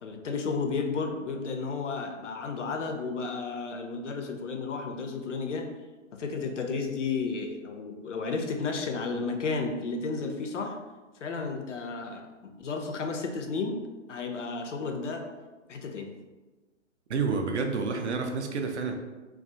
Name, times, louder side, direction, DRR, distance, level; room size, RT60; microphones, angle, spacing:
voice 1, 0.0-5.7 6.1-10.8 11.2-13.8 14.1-15.3 15.7-16.1, left 4 dB, 70° left, 4 dB, 0.5 m, -32 dB
voice 2, 17.1-18.9, right 4 dB, 65° right, 4 dB, 0.5 m, -29 dB
2.3 x 2.3 x 2.5 m, 1.2 s
figure-of-eight pair, 130°, 38 cm